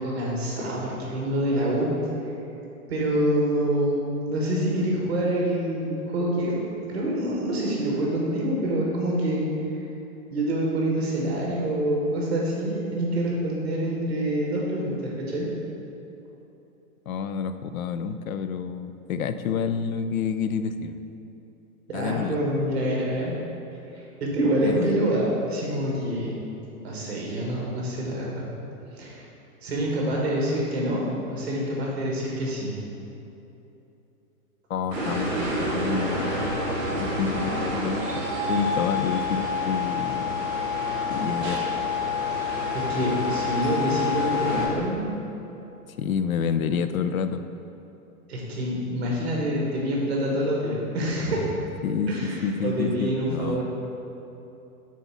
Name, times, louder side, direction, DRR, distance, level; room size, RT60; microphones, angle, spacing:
voice 1, 0.0-1.9 2.9-4.0 4.3-9.4 10.3-15.5 21.9-23.3 23.9-26.4 26.8-28.5 28.9-29.2 29.6-32.7 42.3-45.1 48.3-51.5 52.1-53.7, right 1 dB, 40° right, -3 dB, 1.4 m, -26 dB
voice 2, 17.1-21.0 21.9-22.4 24.6-24.9 34.7-35.3 35.6-36.3 37.0-40.3 41.1-41.6 46.0-47.4 51.8-53.6, left 6 dB, 60° left, 10 dB, 0.5 m, -28 dB
sound 1, 34.9-44.6, left 3 dB, 15° right, 1.7 m, -27 dB
8.0 x 4.2 x 6.0 m, 2.9 s
hypercardioid pair, 180°, 47 cm